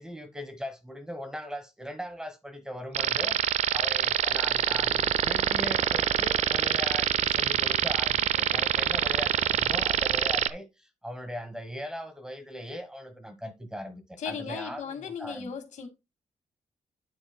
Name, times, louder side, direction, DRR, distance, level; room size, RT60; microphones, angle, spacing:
voice 1, 0.0-3.4 3.7-15.5, equal, 5° right, 1.2 m, -39 dB
sound 1, 2.9-10.5, right 10 dB, 65° right, 0.5 m, -25 dB
voice 2, 14.2-15.9, left 7 dB, 80° left, 2.0 m, -36 dB
9.3 x 8.3 x 2.2 m
wide cardioid pair, 165°, 12 cm